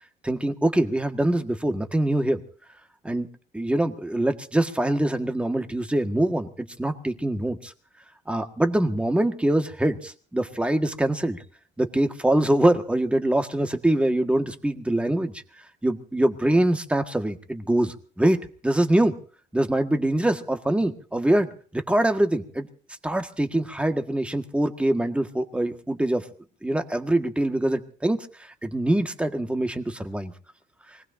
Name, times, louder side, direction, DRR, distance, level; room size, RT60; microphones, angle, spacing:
voice 1, 0.2-2.4 3.0-7.7 8.3-11.4 11.8-15.4 15.8-19.2 19.5-22.7 23.0-26.3 26.6-30.3, right 1 dB, 5° right, 6 dB, 1.7 m, -24 dB
25.0 x 19.0 x 2.7 m, 0.42 s
cardioid pair, 110°, 17 cm